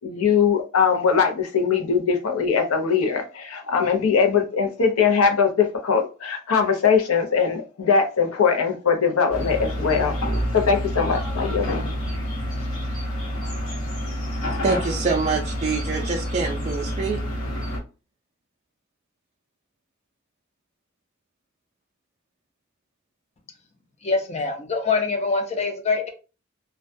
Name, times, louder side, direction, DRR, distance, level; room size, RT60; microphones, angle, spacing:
voice 1, 0.0-10.2 10.5-11.8, left 6 dB, 90° left, 0.6 m, -21 dB
sound 1, 9.3-17.8, equal, 70° left, 1.0 m, -28 dB
voice 2, 14.6-17.2, right 4 dB, 30° right, 0.3 m, -25 dB
voice 3, 24.0-26.1, left 4 dB, 30° left, 0.5 m, -24 dB
2.2 x 2.2 x 2.5 m
head